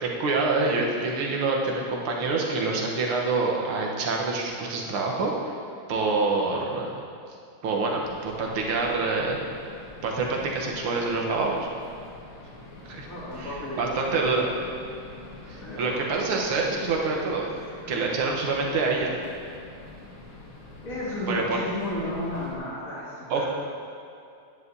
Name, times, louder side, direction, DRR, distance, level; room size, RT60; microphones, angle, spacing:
voice 1, 0.0-5.6 5.9-7.0 7.6-9.4 10.0-11.7 12.9-13.1 13.4-14.5 15.5-17.5 17.9-19.2 21.3-21.6 23.3-23.5, right 3 dB, 90° right, -1 dB, 1.9 m, -26 dB
sound 1, 8.0-22.6, left 2 dB, 80° left, 2.2 m, -45 dB
voice 2, 13.1-14.3 15.3-16.0 17.9-18.1 20.8-23.5, left 1 dB, 40° left, -8 dB, 2.8 m, -33 dB
11.0 x 9.4 x 2.7 m, 2.5 s
omnidirectional pair, 2.3 m